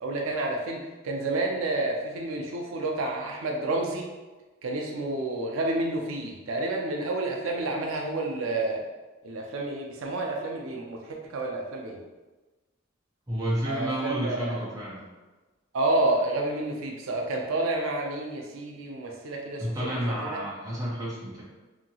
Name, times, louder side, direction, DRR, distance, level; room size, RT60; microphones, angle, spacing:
voice 1, 0.0-4.1 4.6-8.8 9.2-12.0 13.7-14.6 15.7-20.0 20.3-20.4, right 2 dB, 80° right, 1 dB, 0.4 m, -29 dB
voice 2, 13.3-15.0 19.6-21.4, equal, 15° right, -6 dB, 0.6 m, -30 dB
2.8 x 2.6 x 2.7 m, 1.2 s
head